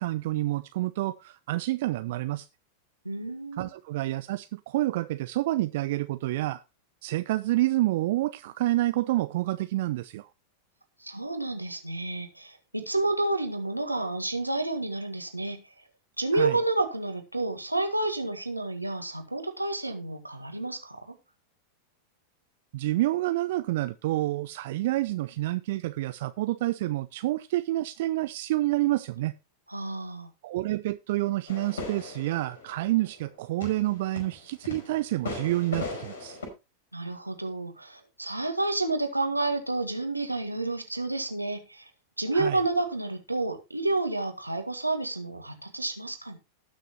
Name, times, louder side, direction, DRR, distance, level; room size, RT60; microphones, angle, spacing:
voice 1, 0.0-2.5 3.5-6.6 7.0-10.3 16.3-16.6 22.7-29.3 30.4-36.4 42.3-42.6, right 16 dB, 55° right, 0.5 m, -28 dB
voice 2, 3.1-3.7 11.0-15.6 16.2-21.0 29.7-30.3 36.9-41.9 42.2-46.4, right 2 dB, 85° right, 1.9 m, -30 dB
sound 1, 31.5-36.5, left 3 dB, 60° left, 5.2 m, -38 dB
18.5 x 6.3 x 3.0 m
figure-of-eight pair, 90°, 0 cm